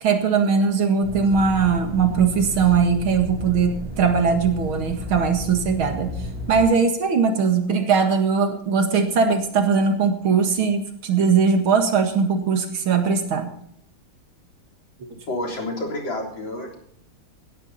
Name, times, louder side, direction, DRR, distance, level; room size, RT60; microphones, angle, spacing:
voice 1, 0.0-6.2 6.5-13.5 15.0-15.1, right 5 dB, 90° right, 5 dB, 2.7 m, -20 dB
sound 1, 1.0-6.6, left 1 dB, 40° left, 7.0 m, -33 dB
voice 2, 15.3-16.7, left 1 dB, 70° left, 1 dB, 4.4 m, -29 dB
18.0 x 11.5 x 4.2 m, 0.68 s
omnidirectional pair, 2.2 m